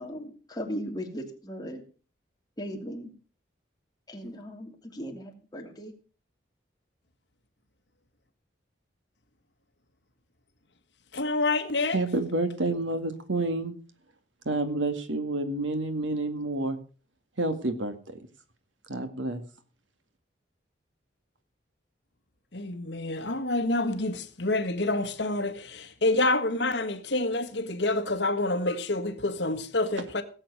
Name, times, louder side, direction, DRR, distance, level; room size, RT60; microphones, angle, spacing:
voice 1, 0.0-1.8 2.6-3.1 4.1-5.9, equal, 20° left, 2.7 m, -37 dB
voice 2, 11.1-12.0 22.5-30.2, left 2 dB, 70° left, 1.6 m, -27 dB
voice 3, 11.9-13.7 14.5-16.8 17.4-17.9 18.9-19.4, right 2 dB, 85° right, 2.1 m, -29 dB
17.5 x 7.9 x 6.2 m
head